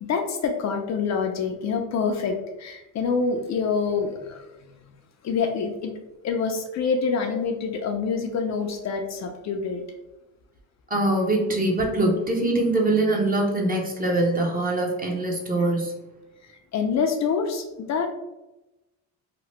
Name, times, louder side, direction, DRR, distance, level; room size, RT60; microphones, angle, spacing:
voice 1, 0.0-4.5 5.2-5.9 6.2-9.8 16.4-18.1, left 5 dB, 45° left, 4 dB, 0.5 m, -26 dB
voice 2, 10.9-15.9, right 2 dB, 25° right, 1 dB, 0.7 m, -23 dB
2.9 x 2.1 x 3.1 m, 0.98 s
supercardioid pair, 85°, 39 cm